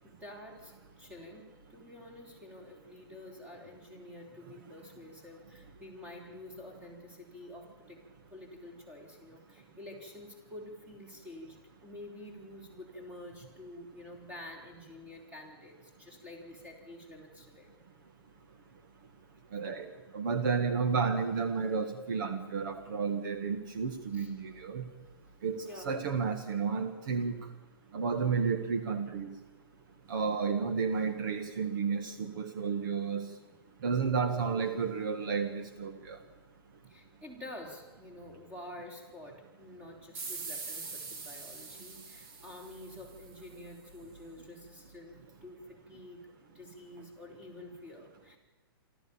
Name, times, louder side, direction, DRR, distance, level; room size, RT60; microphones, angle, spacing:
voice 1, 0.0-8.0 8.3-17.7 24.1-24.3 25.6-26.0 36.9-48.4, left 1 dB, 10° right, 2 dB, 4.0 m, -49 dB
voice 2, 19.5-24.8 25.4-27.3 27.9-29.3 30.1-33.3 33.8-36.2, right 5 dB, 55° right, 9 dB, 1.8 m, -32 dB
sound 1, 40.1-43.5, right 4 dB, 30° right, 2.1 m, -43 dB
27.0 x 13.5 x 7.1 m, 1.3 s
hypercardioid pair, 155°, 13 cm